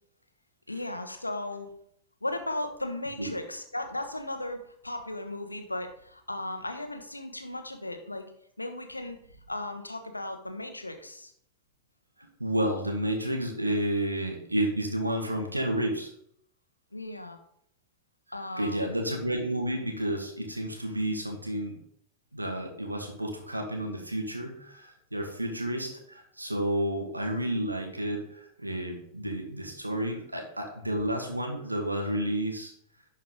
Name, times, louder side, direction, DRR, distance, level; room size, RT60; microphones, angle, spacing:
voice 1, 0.7-1.7 2.2-8.3 8.6-9.2 9.5-11.3 12.2-12.3 16.9-17.4 18.3-19.0, left 1 dB, 85° left, 6 dB, 1.0 m, -36 dB
voice 2, 12.4-16.1 18.6-21.8 22.3-32.7, right 1 dB, 85° right, 3 dB, 1.7 m, -31 dB
11.0 x 4.6 x 3.8 m, 0.69 s
figure-of-eight pair, 90°, 0 cm